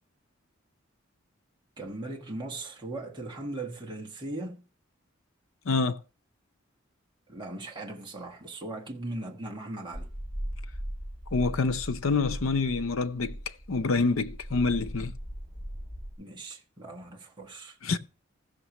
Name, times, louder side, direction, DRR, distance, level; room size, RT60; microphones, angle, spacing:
voice 1, 1.8-4.6 7.3-10.1 16.2-17.8, right 2 dB, 25° right, 1.4 m, -38 dB
voice 2, 5.7-6.0 11.3-13.4 13.7-15.1 17.8-18.0, left 4 dB, 80° left, 0.6 m, -26 dB
sound 1, 9.9-16.1, equal, 10° left, 4.4 m, -39 dB
15.0 x 6.6 x 3.0 m
head